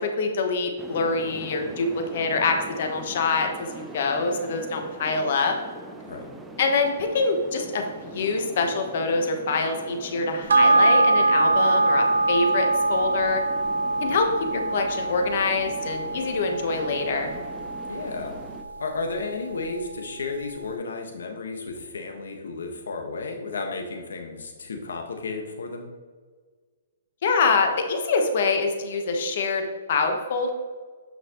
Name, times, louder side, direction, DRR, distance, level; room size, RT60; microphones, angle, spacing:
voice 1, 0.2-5.6 6.6-13.4 14.0-17.3 27.2-30.5, left 4 dB, 50° left, 4 dB, 1.1 m, -25 dB
sound 1, 0.8-18.6, right 2 dB, 5° right, 0.5 m, -42 dB
sound 2, 10.5-19.2 19.6-19.7, right 3 dB, 80° right, 0.6 m, -23 dB
voice 2, 17.9-18.3 18.8-25.9, left 3 dB, 90° left, 3 dB, 1.4 m, -33 dB
9.3 x 5.9 x 3.0 m, 1.5 s
hypercardioid pair, 160°, 0 cm